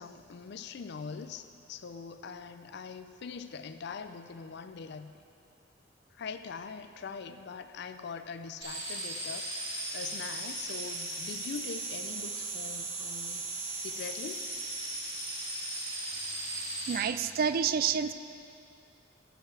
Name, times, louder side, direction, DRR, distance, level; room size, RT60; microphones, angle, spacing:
voice 1, 0.0-5.1 6.1-13.5 13.7-14.5, left 5 dB, 60° left, 10 dB, 0.4 m, -42 dB
sound 1, 8.6-17.0, right 2 dB, 30° right, 2.6 m, -37 dB
voice 2, 16.9-18.1, right 7 dB, 50° right, 13 dB, 0.3 m, -28 dB
14.0 x 9.5 x 3.3 m, 2.6 s
head